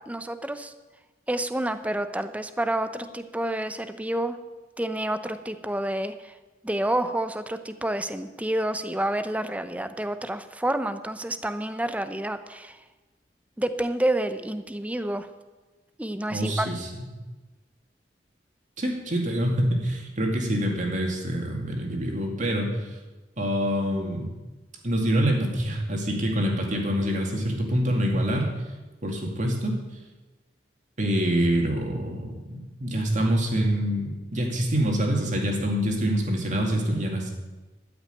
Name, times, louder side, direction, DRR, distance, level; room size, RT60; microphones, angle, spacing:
voice 1, 0.1-0.7 1.3-4.4 4.8-6.3 6.6-12.8 13.6-15.3 16.0-16.7, right 1 dB, 10° right, 10 dB, 0.6 m, -29 dB
voice 2, 16.3-17.1 18.8-23.0 23.4-24.3 24.8-28.5 29.0-29.8 31.0-37.3, equal, 45° right, 1 dB, 2.3 m, -26 dB
13.0 x 6.0 x 9.1 m, 1.2 s
head